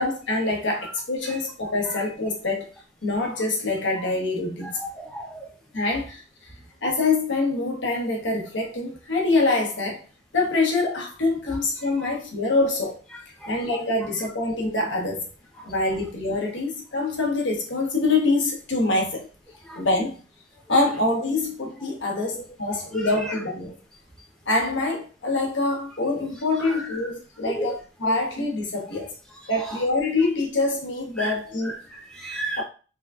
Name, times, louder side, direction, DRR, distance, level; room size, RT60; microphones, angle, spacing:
voice 1, 0.0-2.7 3.0-4.8 5.7-6.2 6.8-10.0 10.3-13.0 13.5-15.3 15.6-19.3 19.8-20.1 20.7-23.8 24.5-29.1 29.5-31.8 32.6-32.7, left 2 dB, 75° left, 0.9 m, -25 dB
voice 2, 4.6-5.5 12.0-12.1 13.4-13.6 15.6-15.7 19.6-19.8 22.3-22.4 22.7-23.4 26.6-27.1 27.5-27.8 29.6-29.8 31.2-31.4 31.6-32.6, right 1 dB, 5° left, 0.6 m, -35 dB
3.7 x 2.3 x 2.3 m
head